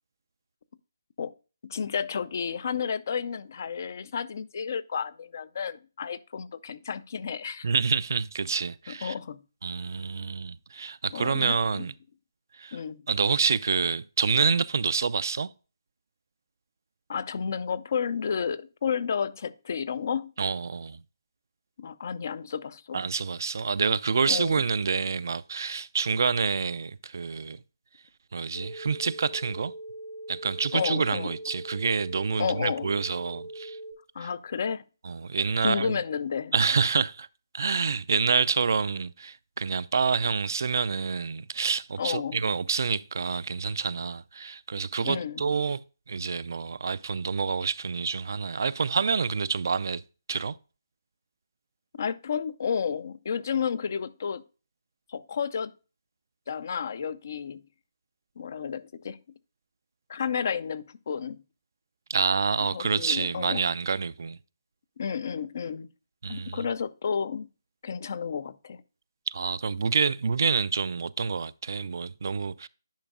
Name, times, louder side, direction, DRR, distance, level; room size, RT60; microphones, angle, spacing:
voice 1, 1.6-7.7 9.0-9.4 11.1-11.9 12.7-13.0 17.1-20.3 21.8-23.0 24.3-24.6 30.7-31.3 32.4-32.9 34.1-34.8 35.6-36.5 42.0-42.4 45.0-45.4 52.0-54.4 55.1-55.7 56.5-57.6 58.4-59.2 60.1-61.4 62.6-63.7 65.0-65.9 66.3-67.5 67.8-68.8, left 6 dB, 50° left, 0.4 m, -31 dB
voice 2, 7.6-9.1 9.6-11.9 12.6-12.8 13.1-15.5 20.4-21.0 22.9-27.6 28.3-29.7 30.3-33.8 34.2-34.3 35.0-36.0 36.5-37.3 37.5-45.8 46.1-50.0 50.3-50.6 62.1-64.4 66.2-66.7 69.3-72.7, right 5 dB, 55° right, 0.3 m, -27 dB
sound 1, 28.5-33.9, right 1 dB, 80° left, 1.7 m, -41 dB
10.0 x 5.2 x 2.3 m
figure-of-eight pair, 150°, 2 cm